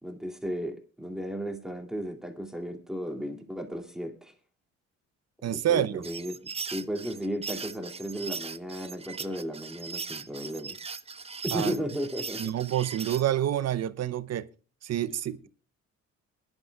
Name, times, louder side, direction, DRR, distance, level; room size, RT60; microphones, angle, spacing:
voice 1, 0.0-4.3 5.4-6.4 6.7-10.8 11.4-12.4, equal, ahead, 2.5 m, -35 dB
voice 2, 5.4-6.0 11.5-11.8 12.4-14.5 14.8-15.5, right 11 dB, 60° right, 0.8 m, -28 dB
sound 1, 6.0-13.3, right 5 dB, 20° right, 0.6 m, -39 dB
22.5 x 11.0 x 2.3 m
cardioid pair, 90°, 30 cm